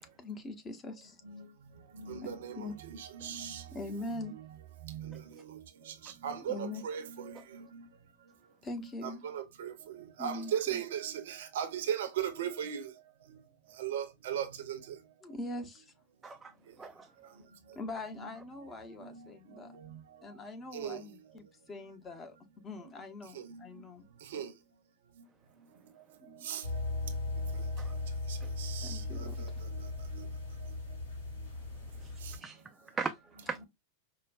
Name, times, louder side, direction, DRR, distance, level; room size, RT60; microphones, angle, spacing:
voice 1, 0.2-1.1 2.2-2.8 3.7-4.4 6.5-6.8 8.6-9.2 10.2-10.8 15.2-15.9 17.7-19.7 20.2-22.4 22.6-24.1 26.2-26.5 28.8-29.4, left 2 dB, 20° left, 0.7 m, -42 dB
voice 2, 2.0-3.6 4.0-4.4 4.9-5.6 6.2-7.8 8.8-12.9 13.8-14.8 18.2-18.3 19.0-19.2 20.7-21.0 23.4-23.6 24.3-24.5 26.4-26.6 28.6-29.3 30.1-30.2, right 9 dB, 60° right, 0.7 m, -38 dB
voice 3, 16.2-17.1 27.8-28.0 28.4-28.5 31.6-33.7, right 4 dB, 15° right, 0.3 m, -41 dB
sound 1, 26.6-32.4, left 2 dB, 75° left, 1.8 m, -37 dB
4.8 x 2.2 x 2.4 m
figure-of-eight pair, 90°, 0 cm